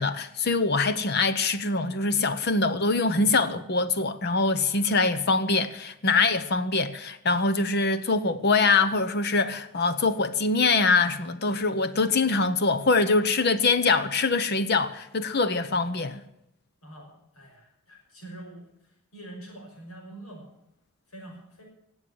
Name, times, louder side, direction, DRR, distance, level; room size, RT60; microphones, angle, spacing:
voice 1, 0.0-16.2, left 3 dB, 50° left, 0.8 m, -24 dB
voice 2, 16.8-20.5 21.1-21.6, right 1 dB, 85° left, 5.9 m, -45 dB
17.5 x 8.0 x 7.8 m
head